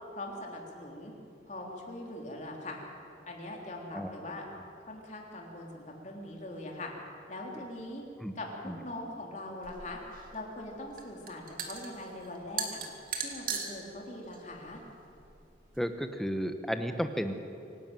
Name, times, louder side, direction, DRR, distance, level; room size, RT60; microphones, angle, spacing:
voice 1, 0.1-1.1 1.5-2.8 3.3-4.4 4.9-6.9 7.3-8.0 8.4-10.0 10.3-12.8 13.2-14.8, left 1 dB, 40° left, 0 dB, 3.4 m, -41 dB
sound 1, 9.6-15.8, right 6 dB, 50° right, 2.3 m, -40 dB
voice 2, 15.8-17.3, equal, ahead, 7 dB, 1.0 m, -33 dB
25.5 x 12.0 x 9.1 m, 2.6 s
head